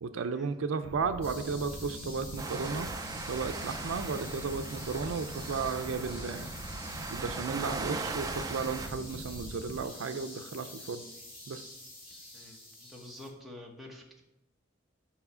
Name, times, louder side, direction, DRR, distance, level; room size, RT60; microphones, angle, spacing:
voice 1, 0.0-2.9 3.3-6.5 7.1-11.0 11.5-11.7, right 5 dB, 80° right, 9 dB, 0.5 m, -34 dB
sound 1, 0.8-9.8, equal, 80° left, 1.7 m, -44 dB
sound 2, 1.2-13.3, left 1 dB, 50° left, 2.1 m, -47 dB
sound 3, 2.4-8.9, right 4 dB, 20° right, 0.3 m, -39 dB
voice 2, 12.3-14.2, left 1 dB, ahead, -2 dB, 1.0 m, -48 dB
5.6 x 4.7 x 5.5 m, 0.90 s
head